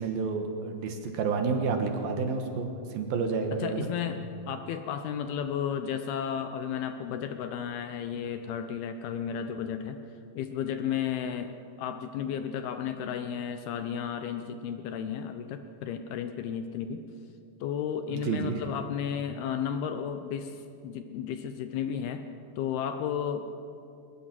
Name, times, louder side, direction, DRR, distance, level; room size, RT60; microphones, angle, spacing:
voice 1, 0.0-3.9 18.1-18.6, right 4 dB, 65° right, 5 dB, 2.8 m, -30 dB
voice 2, 3.6-10.0 10.3-17.0 17.6-22.2 22.6-23.6, left 8 dB, 75° left, 8 dB, 2.4 m, -33 dB
23.0 x 20.0 x 6.0 m, 2.6 s
omnidirectional pair, 5.0 m